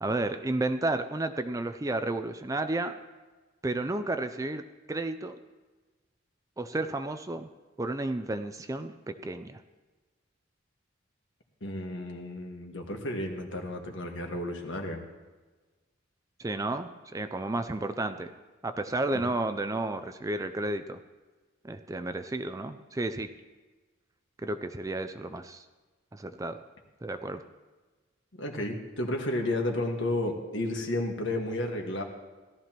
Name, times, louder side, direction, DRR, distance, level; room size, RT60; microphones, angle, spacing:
voice 1, 0.0-3.0 3.6-4.6 4.9-5.4 6.6-7.5 7.8-9.6 16.4-18.3 18.6-21.0 21.6-23.3 24.4-25.6 26.1-26.6 27.0-27.4, right 2 dB, 15° right, 9 dB, 0.4 m, -32 dB
voice 2, 11.6-15.0 28.3-32.0, left 1 dB, 65° left, 2 dB, 1.6 m, -32 dB
17.5 x 13.0 x 3.0 m, 1.3 s
head